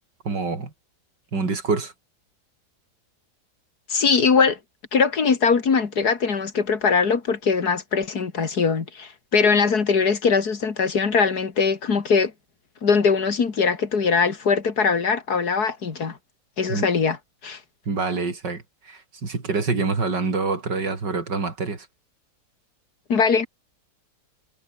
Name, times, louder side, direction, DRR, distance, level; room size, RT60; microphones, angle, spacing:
voice 1, 0.2-0.7 1.3-1.9 16.7-16.8 17.9-21.9, right 4 dB, 80° right, 4.2 m, -26 dB
voice 2, 3.9-4.6 4.9-12.3 12.8-16.2 16.6-17.2 17.4-17.6 23.1-23.5, left 5 dB, 60° left, 2.7 m, -21 dB
omnidirectional pair, 1.9 m